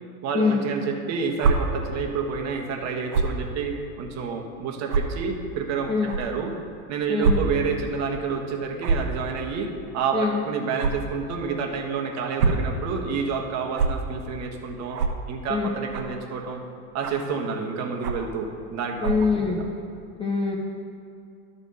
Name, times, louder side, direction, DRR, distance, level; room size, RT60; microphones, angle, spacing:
voice 1, 0.2-6.5 6.9-15.0 15.3-16.6 16.9-19.2 19.5-19.6, right 5 dB, 35° right, 2 dB, 1.3 m, -29 dB
sound 1, 1.4-1.5 3.1-3.3 4.1-4.2 4.9-5.0 6.1-6.2 7.2-7.3 7.7-7.8 8.8-9.1 10.8-10.9 12.2-12.6 13.7-13.9 14.9-15.1 15.9-16.2 17.0-17.3 18.0-18.3 19.0-19.3, right 5 dB, 85° right, 1.1 m, -23 dB
voice 2, 7.1-7.4 10.1-10.4 15.5-15.7 19.0-19.6 20.1-20.6, left 4 dB, 15° left, -1 dB, 0.5 m, -24 dB
12.0 x 4.2 x 6.7 m, 2.5 s
hypercardioid pair, 120°, 45 cm